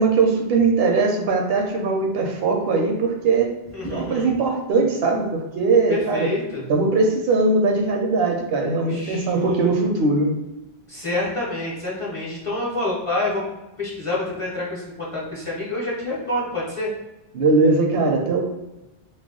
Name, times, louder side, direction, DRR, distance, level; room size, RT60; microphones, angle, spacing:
voice 1, 0.0-3.5 3.8-6.3 6.7-10.3 17.3-18.4, right 3 dB, 70° right, 2 dB, 0.8 m, -20 dB
voice 2, 3.7-4.3 5.9-6.6 8.9-9.7 10.9-13.4 13.8-16.9, left 2 dB, 40° left, -5 dB, 0.6 m, -27 dB
2.4 x 2.1 x 3.5 m, 0.98 s
omnidirectional pair, 1.1 m